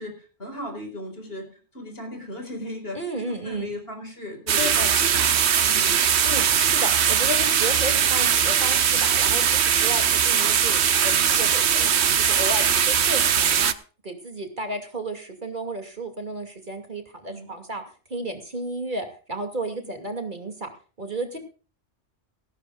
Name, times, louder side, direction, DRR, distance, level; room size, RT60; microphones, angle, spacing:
voice 1, 0.0-6.0 17.3-17.5 19.8-19.9, left 1 dB, 55° left, 4 dB, 5.2 m, -37 dB
voice 2, 2.9-3.7 4.6-5.0 6.2-9.5 9.8-13.7 14.0-17.8 18.1-20.7 21.0-21.4, right 1 dB, 45° right, 5 dB, 2.7 m, -33 dB
sound 1, 4.5-13.7, right 8 dB, 70° right, 1.1 m, -20 dB
17.0 x 17.0 x 2.4 m, 0.36 s
omnidirectional pair, 1.2 m